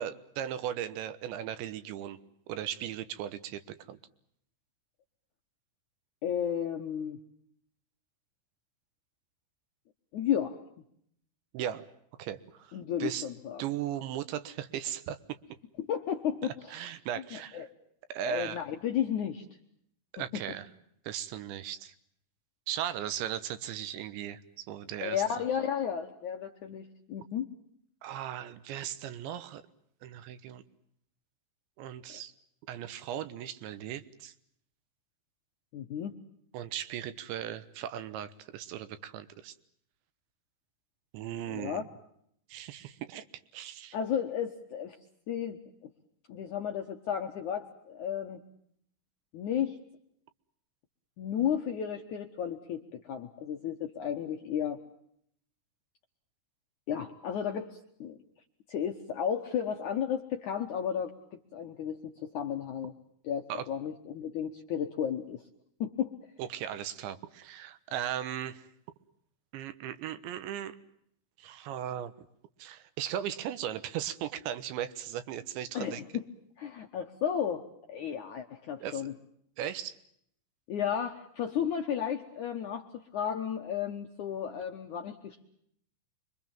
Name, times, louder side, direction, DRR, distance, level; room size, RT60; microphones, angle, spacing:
voice 1, 0.0-2.2 2.5-4.0 11.5-11.9 12.2-13.3 13.6-15.4 16.4-17.7 18.1-18.6 20.1-20.7 21.1-21.9 22.7-25.2 28.0-29.6 30.0-30.6 31.8-32.3 32.7-34.3 36.5-39.5 41.1-41.8 42.5-43.3 43.5-44.0 63.5-63.7 66.4-68.6 69.5-70.8 71.4-72.1 72.6-76.0 78.8-79.1 79.6-80.0, right 10 dB, 80° right, 13 dB, 3.4 m, -37 dB
voice 2, 6.2-7.2 10.1-10.6 12.7-13.6 15.8-16.9 17.3-17.7 18.2-19.4 20.3-20.4 25.0-27.5 32.1-32.2 35.7-36.2 41.5-41.8 43.9-45.0 45.3-45.6 46.3-48.4 49.3-49.8 51.2-54.8 56.9-58.2 58.7-62.9 63.2-65.4 65.8-66.1 75.7-76.2 76.6-79.1 80.7-85.5, left 8 dB, 75° left, 3 dB, 1.8 m, -33 dB
27.0 x 24.0 x 7.3 m, 0.70 s
omnidirectional pair, 5.3 m